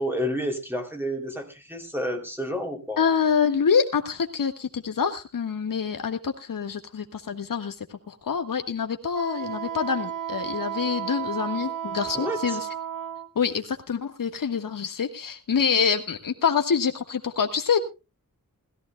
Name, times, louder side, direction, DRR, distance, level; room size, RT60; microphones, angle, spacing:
voice 1, 0.0-3.0 12.1-12.6, equal, 5° right, 3 dB, 2.9 m, -30 dB
voice 2, 3.0-7.7 8.1-12.7 13.3-17.8, left 6 dB, 70° left, 5 dB, 1.6 m, -26 dB
Wind instrument woodwind instrument, 9.1-13.3, right 9 dB, 65° right, 1.2 m, -33 dB
20.5 x 14.5 x 2.3 m, 0.28 s
wide cardioid pair, 140°, 35 cm